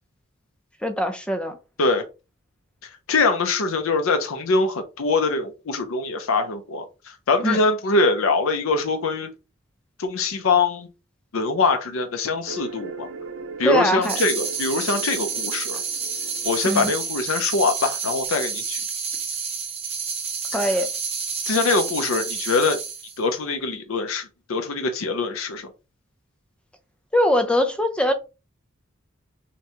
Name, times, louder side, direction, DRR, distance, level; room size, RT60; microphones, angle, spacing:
voice 1, 0.8-1.6 7.4-7.6 13.6-14.2 16.7-16.9 20.5-20.9 27.1-28.1, equal, 5° left, 0.5 m, -22 dB
voice 2, 2.8-9.3 10.0-10.9 11.3-13.1 13.6-15.8 16.4-18.8 20.5-20.7 21.5-22.8 23.2-25.7, left 3 dB, 85° left, 0.6 m, -23 dB
sound 1, 12.5-17.7, right 4 dB, 70° right, 0.6 m, -39 dB
sound 2, 14.0-23.2, right 6 dB, 30° right, 1.0 m, -29 dB
5.8 x 2.2 x 2.9 m
head